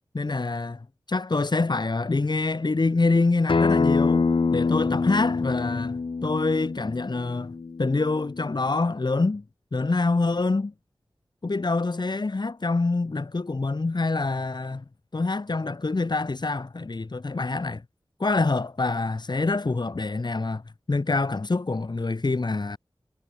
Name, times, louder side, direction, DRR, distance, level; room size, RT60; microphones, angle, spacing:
voice 1, 0.1-7.5 7.8-9.4 9.7-10.7 11.4-14.8 15.1-17.8 18.2-20.6 20.9-22.8, left 3 dB, 55° left, 3.7 m, -26 dB
Acoustic guitar, 3.5-8.7, left 4 dB, 70° left, 2.6 m, -25 dB
cardioid pair, 45°, 9 cm